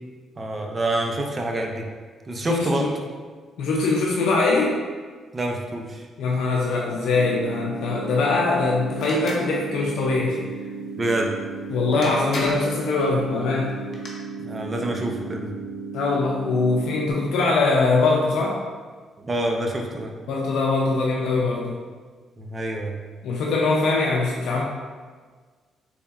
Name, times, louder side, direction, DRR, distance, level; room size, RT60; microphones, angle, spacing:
voice 1, 0.4-1.8 2.3-2.9 5.3-6.1 11.0-11.3 14.4-15.5 19.2-20.1 22.4-23.0, right 1 dB, 30° right, 2 dB, 0.5 m, -27 dB
voice 2, 2.4-2.9 3.6-4.8 6.2-10.4 11.7-13.7 15.9-18.6 20.3-21.8 23.2-24.6, left 3 dB, 80° left, -2 dB, 0.4 m, -22 dB
sound 1, 7.1-17.1, right 4 dB, 75° right, 0.7 m, -35 dB
sound 2, 9.0-9.5 11.5-11.6 12.0-12.8 13.7-14.1, left 2 dB, 45° left, 0.8 m, -33 dB
3.9 x 3.4 x 2.4 m, 1.5 s
cardioid pair, 90°, 0 cm